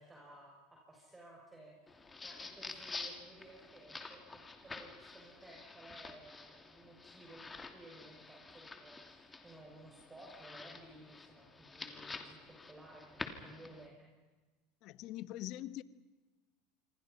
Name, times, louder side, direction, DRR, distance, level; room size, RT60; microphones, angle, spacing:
voice 1, 0.0-14.1, right 1 dB, 15° right, -2 dB, 7.0 m, -56 dB
sound 1, 1.9-13.9, left 3 dB, 15° left, 2.8 m, -49 dB
voice 2, 14.8-15.8, left 14 dB, 55° left, 15 dB, 1.1 m, -43 dB
27.5 x 24.0 x 5.7 m, 1.2 s
hypercardioid pair, 100°, 0 cm